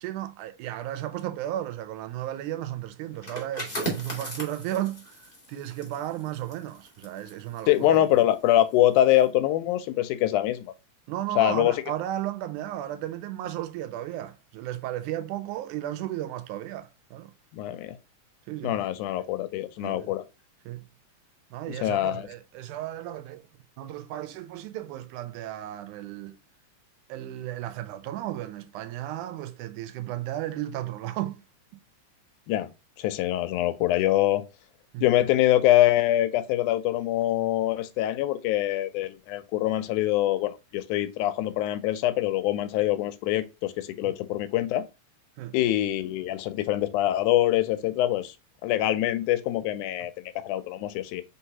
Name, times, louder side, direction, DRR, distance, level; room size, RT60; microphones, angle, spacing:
voice 1, 0.0-8.0 11.1-17.3 18.5-18.8 19.8-20.1 20.7-20.8 21.5-23.4 23.8-26.4 27.1-31.4 34.9-35.1 44.0-44.2 45.4-45.6, right 13 dB, 85° right, 2.0 m, -34 dB
sound 1, 3.1-8.6 9.0-9.2, right 1 dB, 30° left, 0.7 m, -38 dB
voice 2, 7.7-10.7 11.4-11.8 17.5-18.0 18.6-20.2 21.7-22.3 32.5-32.7 33.0-34.4 35.0-44.8 45.5-48.4 48.6-51.2, left 13 dB, 85° left, 2.0 m, -24 dB
4.5 x 3.8 x 2.7 m
omnidirectional pair, 3.5 m